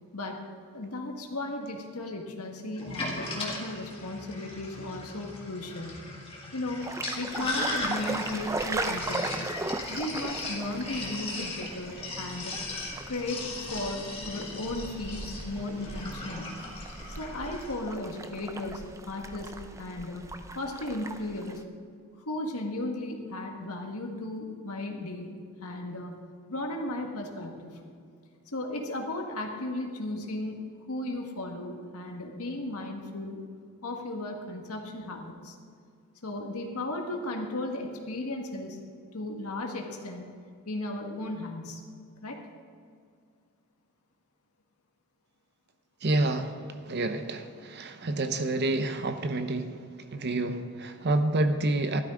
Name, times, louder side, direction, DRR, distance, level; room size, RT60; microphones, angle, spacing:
voice 1, 0.1-0.4 0.7-6.1 6.5-9.6 9.9-12.6 13.1-16.6 17.2-20.3 20.5-21.6 22.2-26.2 26.5-27.8 28.5-33.4 33.8-35.5 36.2-38.8 39.1-40.3 40.6-41.8 42.2-42.4, left 1 dB, 85° left, 2 dB, 1.6 m, -35 dB
Sink (filling or washing), 2.8-17.8, left 2 dB, 25° left, 1.8 m, -38 dB
sound 1, 6.8-21.6, right 2 dB, 15° right, 0.4 m, -38 dB
voice 2, 46.0-52.0, right 2 dB, 50° right, 8 dB, 0.7 m, -29 dB
13.5 x 12.0 x 3.8 m, 2.2 s
head